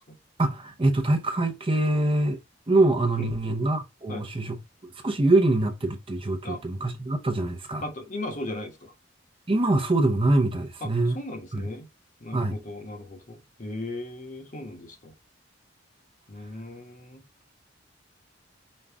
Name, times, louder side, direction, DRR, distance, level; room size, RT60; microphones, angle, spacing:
voice 1, 0.4-2.4 2.7-4.6 5.0-7.8 9.5-11.1 11.5-11.6 12.3-12.6, right 2 dB, 25° right, 0.6 m, -24 dB
voice 2, 7.8-8.9 10.8-10.9 11.1-11.9 12.2-15.1 16.3-17.2, left 2 dB, 40° left, 1.0 m, -37 dB
5.3 x 2.4 x 3.4 m
head